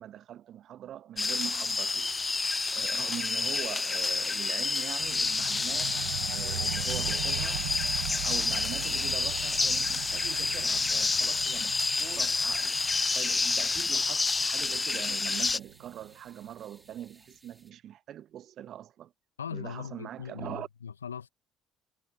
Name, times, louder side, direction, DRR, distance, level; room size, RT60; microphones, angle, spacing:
voice 1, 0.0-2.2 2.7-6.1 6.3-7.7 8.2-12.8 13.1-19.1 19.5-20.7, right 11 dB, 55° right, 1.0 m, -43 dB
sound 1, 1.2-15.6, left 4 dB, 25° left, 0.4 m, -29 dB
sound 2, 5.0-16.1, right 19 dB, 75° right, 0.4 m, -41 dB
sound 3, 8.7-17.7, right 2 dB, 15° right, 4.5 m, -58 dB
voice 2, 19.4-21.3, left 7 dB, 85° left, 1.4 m, -39 dB
figure-of-eight pair, 55°, 0 cm